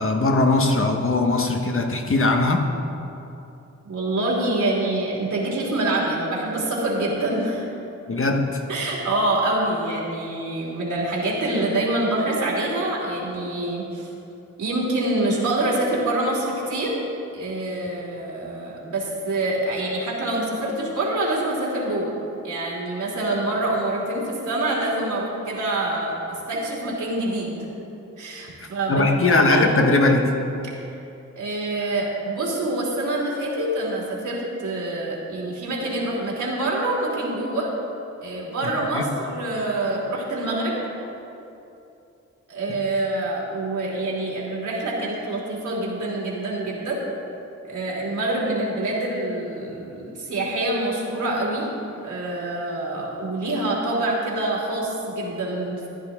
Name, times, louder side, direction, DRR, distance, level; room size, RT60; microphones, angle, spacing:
voice 1, 0.0-2.7 8.1-8.6 28.9-30.3 38.6-39.0, left 2 dB, 45° left, 3 dB, 1.2 m, -20 dB
voice 2, 3.8-7.6 8.7-14.1 14.6-17.0 17.3-22.1 22.4-27.7 28.2-29.7 31.4-37.7 38.2-40.8 42.5-47.0 47.6-51.7 52.0-55.9, right 2 dB, 75° right, -4 dB, 3.0 m, -26 dB
14.5 x 10.5 x 3.7 m, 2.8 s
cardioid pair, 80°, 30 cm